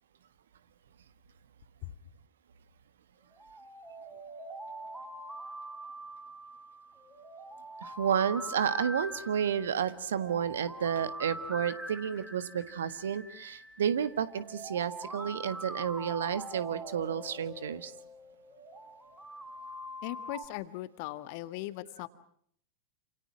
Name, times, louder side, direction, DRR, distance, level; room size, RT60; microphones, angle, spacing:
sound 1, 3.3-20.5, right 1 dB, 5° right, 3.9 m, -43 dB
voice 1, 7.8-17.9, right 8 dB, 65° right, 14 dB, 1.5 m, -31 dB
voice 2, 20.0-22.1, left 16 dB, 45° left, 12 dB, 1.7 m, -39 dB
29.0 x 27.5 x 6.2 m, 0.66 s
figure-of-eight pair, 90°, 0 cm